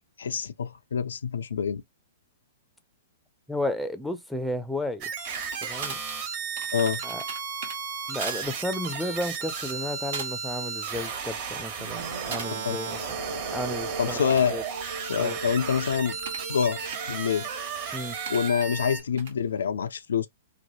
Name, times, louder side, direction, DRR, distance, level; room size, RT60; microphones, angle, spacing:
voice 1, 0.2-1.8 6.7-7.0 12.6-12.8 14.0-14.5 15.1-16.2 16.5-16.8 17.1-17.5 18.3-20.3, left 7 dB, 75° left, 0.3 m, -26 dB
voice 2, 3.5-5.1 5.6-6.0 7.0-7.2 8.1-13.2 13.5-14.2 14.5-14.6 15.2-15.4 17.9-18.1, left 1 dB, ahead, 0.5 m, -33 dB
sound 1, 5.0-19.0, right 6 dB, 40° right, 1.1 m, -34 dB
sound 2, 5.2-7.8 8.2-8.4 8.8-9.0 9.7-9.8 10.1-10.5 10.9-11.4 12.3-12.5 14.1-16.5 16.9-17.1 18.3-18.4 19.2-19.4, right 5 dB, 60° right, 1.0 m, -39 dB
sound 3, 11.8-19.2, right 3 dB, 80° right, 0.6 m, -41 dB
2.9 x 2.2 x 2.9 m
figure-of-eight pair, 115°, 0 cm